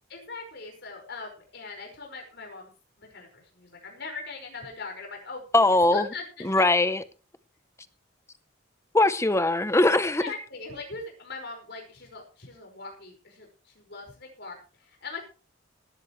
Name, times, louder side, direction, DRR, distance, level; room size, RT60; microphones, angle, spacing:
voice 1, 0.1-2.7 3.0-6.6 10.0-15.2, left 3 dB, 55° left, 5.3 m, -41 dB
voice 2, 5.5-6.0 6.4-7.0 8.9-10.2, left 2 dB, 15° left, 0.7 m, -21 dB
18.5 x 12.5 x 3.2 m
head